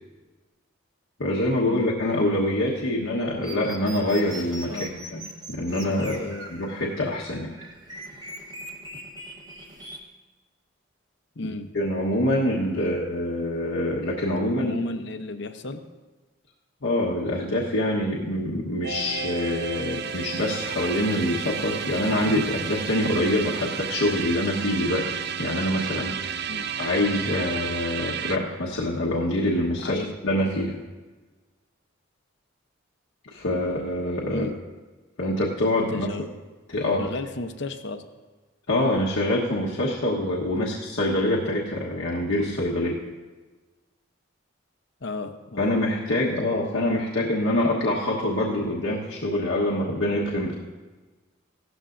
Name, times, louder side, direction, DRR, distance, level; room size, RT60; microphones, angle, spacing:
voice 1, 1.2-5.2 5.5-6.2 6.5-7.5 11.4-14.8 16.8-26.4 26.8-30.8 33.3-34.5 35.2-36.1 36.7-37.1 38.7-43.0 45.6-50.5, left 1 dB, 85° left, -4 dB, 1.2 m, -25 dB
sound 1, 3.4-10.0, right 1 dB, 20° right, 1.1 m, -41 dB
voice 2, 6.0-6.5 11.4-11.7 12.8-13.0 14.5-15.8 26.5-26.7 29.8-30.1 34.3-34.5 35.9-36.2 37.0-38.0 40.6-40.7 45.0-45.7, left 2 dB, 60° left, 8 dB, 0.8 m, -34 dB
sound 2, 18.8-28.4, right 7 dB, 55° right, 0.5 m, -32 dB
16.0 x 12.5 x 2.6 m, 1.3 s
head